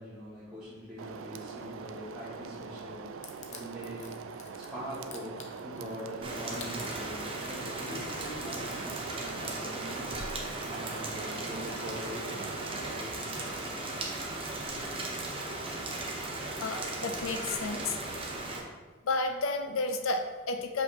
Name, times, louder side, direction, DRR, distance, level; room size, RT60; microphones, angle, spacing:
voice 1, 0.0-10.2 10.6-12.5 12.9-13.4, equal, 5° right, -13 dB, 1.4 m, -43 dB
sound 1, 1.0-13.0, right 5 dB, 70° right, 0.3 m, -43 dB
Crushing, 3.2-10.0, left 6 dB, 35° left, 0.6 m, -50 dB
Rain, 6.2-18.6, right 2 dB, 25° right, 0.7 m, -37 dB
voice 2, 16.6-18.0 19.0-20.8, left 3 dB, 75° left, 5 dB, 0.5 m, -31 dB
6.2 x 5.2 x 2.9 m, 1.3 s
head